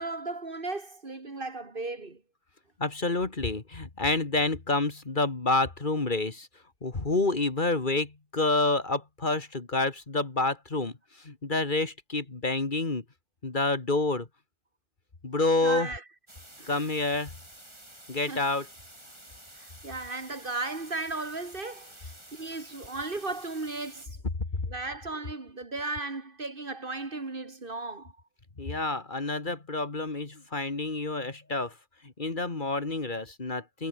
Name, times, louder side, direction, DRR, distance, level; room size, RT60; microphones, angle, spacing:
voice 1, 0.0-2.2 15.6-16.0 16.6-16.8 18.3-18.5 19.5-24.2 24.7-28.1, right 3 dB, 50° right, 2.4 m, -36 dB
voice 2, 2.8-6.5 6.8-13.0 13.4-14.3 15.2-15.9 16.7-17.3 18.1-18.7 28.6-31.7 32.0-33.9, left 2 dB, 45° left, 2.2 m, -28 dB
sound 1, 16.3-24.1, right 1 dB, 25° right, 5.0 m, -50 dB
omnidirectional pair, 1.2 m